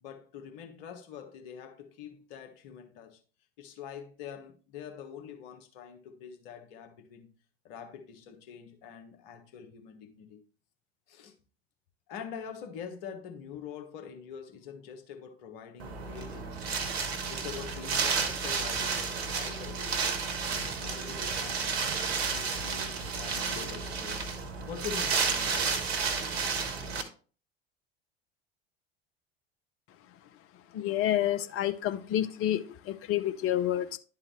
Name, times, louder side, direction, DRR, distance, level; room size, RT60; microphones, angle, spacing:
voice 1, 0.0-3.2 3.6-7.3 7.6-10.4 11.1-11.4 12.1-16.7 17.3-20.1 20.4-21.8 22.3-24.2 24.7-26.0, left 7 dB, 60° left, 1.4 m, -45 dB
Wind, 15.8-27.0, right 5 dB, 70° right, 1.1 m, -32 dB
voice 2, 30.7-34.0, left 12 dB, 45° left, 0.7 m, -29 dB
11.0 x 3.8 x 3.1 m
figure-of-eight pair, 70°, 32 cm